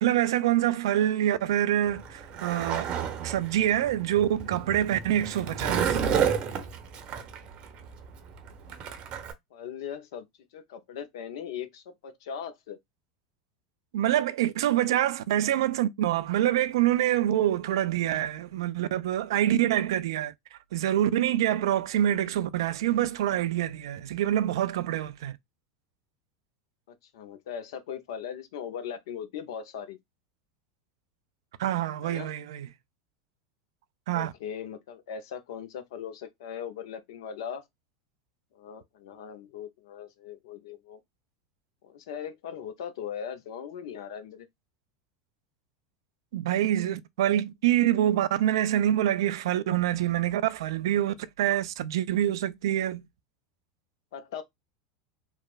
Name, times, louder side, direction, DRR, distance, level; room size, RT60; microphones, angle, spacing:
voice 1, 0.0-2.9 3.2-6.0 13.9-25.4 31.6-32.7 34.1-34.3 46.3-53.0, right 12 dB, 70° right, 0.3 m, -26 dB
Skateboard, 1.9-9.3, right 7 dB, 45° right, 0.7 m, -31 dB
voice 2, 9.5-10.3 10.5-12.8 27.1-30.0 32.0-32.3 34.1-37.6 38.5-41.0 41.8-44.5 54.1-54.4, left 8 dB, 70° left, 0.6 m, -39 dB
3.1 x 2.1 x 2.4 m
hypercardioid pair, 85°, 3 cm